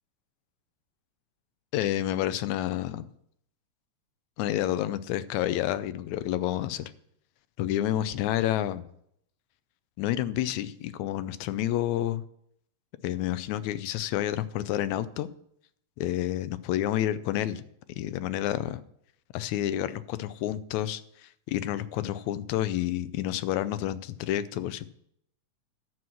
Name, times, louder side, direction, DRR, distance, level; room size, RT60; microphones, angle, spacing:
voice 1, 1.7-3.1 4.4-6.9 7.6-8.9 10.0-12.2 13.0-15.3 16.0-17.6 18.0-18.8 19.3-24.9, left 13 dB, 80° left, 14 dB, 1.9 m, -29 dB
12.5 x 4.6 x 7.2 m, 0.72 s
omnidirectional pair, 3.3 m